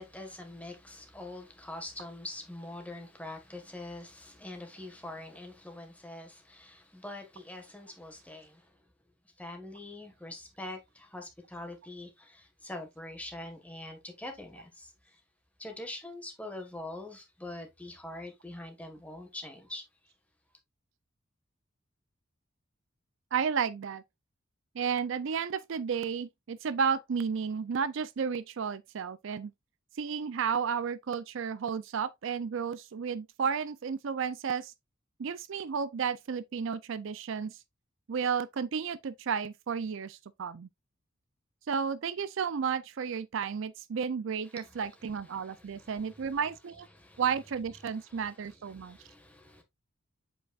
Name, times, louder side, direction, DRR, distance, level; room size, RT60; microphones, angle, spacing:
voice 1, 0.0-8.8 9.4-15.2 15.6-19.8 44.5-44.8 45.3-46.4 46.9-47.2 47.9-49.6, left 1 dB, 5° left, 1.5 m, -44 dB
voice 2, 23.3-24.0 24.7-29.5 30.0-34.7 35.2-37.6 38.1-40.7 41.7-46.9 47.2-49.0, right 6 dB, 65° right, 0.4 m, -32 dB
7.9 x 5.3 x 2.4 m
head